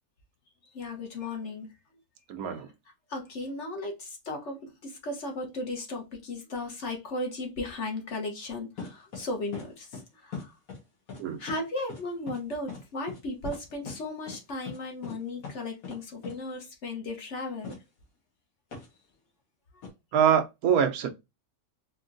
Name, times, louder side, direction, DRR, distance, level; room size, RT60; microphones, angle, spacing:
voice 1, 0.7-1.7 3.1-10.5 11.4-17.8, left 2 dB, 55° left, 1.3 m, -36 dB
voice 2, 2.3-2.7 11.2-11.4 20.1-21.1, right 8 dB, 75° right, 1.1 m, -24 dB
sound 1, 8.8-9.2 9.5-9.7 9.9-10.0 10.3-10.8 11.1-11.2 11.5-11.6 11.9-12.0 12.3-12.4 12.7-12.8 13.1-13.2 13.4-13.6 13.9-14.0 14.3-14.4 14.7-14.8 15.0-15.2 15.4-15.6 15.8-16.0 16.2-16.3 17.6-17.8 18.7-18.9 19.8-19.9, left 5 dB, 70° left, 1.8 m, -39 dB
4.5 x 2.9 x 2.5 m
omnidirectional pair, 1.6 m